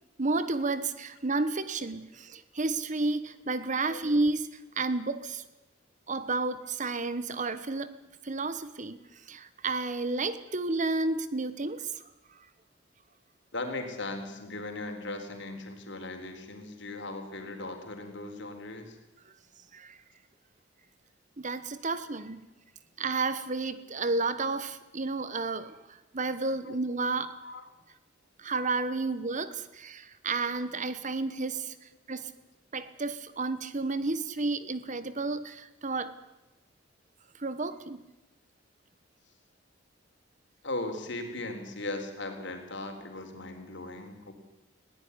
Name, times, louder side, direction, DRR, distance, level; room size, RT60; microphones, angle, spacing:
voice 1, 0.2-5.4 6.1-8.0 8.2-9.0 9.3-12.0 19.7-20.0 21.4-22.4 23.0-27.4 28.4-32.3 32.7-36.1 37.4-38.0, right 3 dB, 40° right, 14 dB, 1.2 m, -31 dB
voice 2, 13.5-19.0 21.9-22.0 26.6-26.8 27.4-27.6 40.6-44.3, left 2 dB, 65° left, 5 dB, 4.0 m, -38 dB
20.5 x 17.0 x 9.9 m, 1.0 s
head